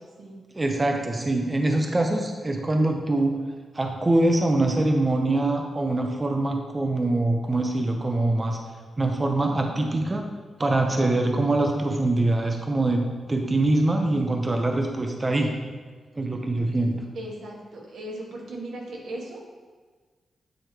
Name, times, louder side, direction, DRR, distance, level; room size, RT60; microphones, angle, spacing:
voice 1, 0.5-3.4 3.7-8.6 9.0-10.3 10.6-15.5 16.2-17.0, right 2 dB, 20° right, 3 dB, 0.5 m, -24 dB
voice 2, 17.1-19.4, right 1 dB, 85° right, -2 dB, 1.4 m, -37 dB
8.3 x 3.2 x 4.4 m, 1.5 s
wide cardioid pair, 135°, 0 cm